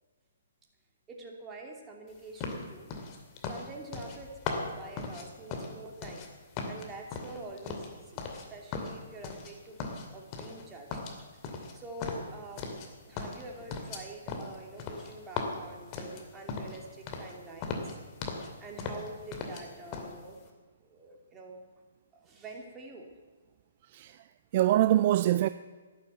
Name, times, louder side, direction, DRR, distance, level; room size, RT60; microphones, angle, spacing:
voice 1, 1.1-2.9 3.5-6.3 6.7-8.2 8.5-9.8 10.1-11.0 11.7-12.8 13.1-17.8 18.6-20.4 20.8-21.6 22.2-23.1, right 2 dB, 15° right, 2.8 m, -46 dB
sound 1, 2.4-6.3 6.5-8.5 8.7-9.5 9.8-10.6 10.9-12.9 13.2-16.8 17.1-17.3 17.6-18.5 18.8-19.6 19.9-20.1, left 4 dB, 30° left, 2.4 m, -38 dB
voice 2, 23.8-25.5, right 13 dB, 40° right, 0.4 m, -25 dB
12.0 x 12.0 x 8.1 m
figure-of-eight pair, 130°, 0 cm